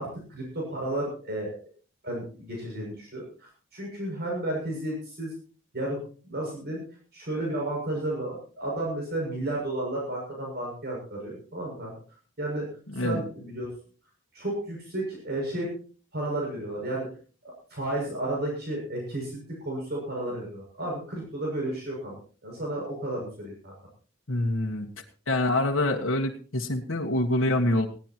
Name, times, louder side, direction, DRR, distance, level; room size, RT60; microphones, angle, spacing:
voice 1, 0.0-1.6 2.0-5.3 5.7-6.0 6.3-6.8 7.1-11.9 12.4-12.7 12.9-13.7 14.3-15.7 16.1-17.1 17.4-22.2 22.4-23.7, right 1 dB, 55° right, -2 dB, 6.9 m, -32 dB
voice 2, 12.9-13.2 24.3-24.9 25.3-27.9, left 1 dB, 70° left, 0 dB, 1.6 m, -25 dB
20.0 x 16.5 x 3.0 m, 0.40 s
head